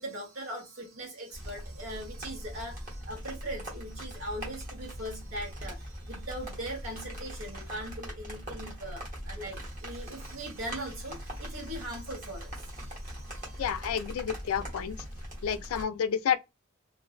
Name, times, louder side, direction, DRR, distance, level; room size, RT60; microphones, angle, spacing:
voice 1, 0.0-13.8, right 1 dB, 80° right, 1.1 m, -40 dB
sound 1, 1.3-15.8, equal, 40° right, 0.9 m, -41 dB
voice 2, 13.6-15.0 15.4-16.4, left 8 dB, 85° left, 0.3 m, -30 dB
2.5 x 2.1 x 2.3 m
head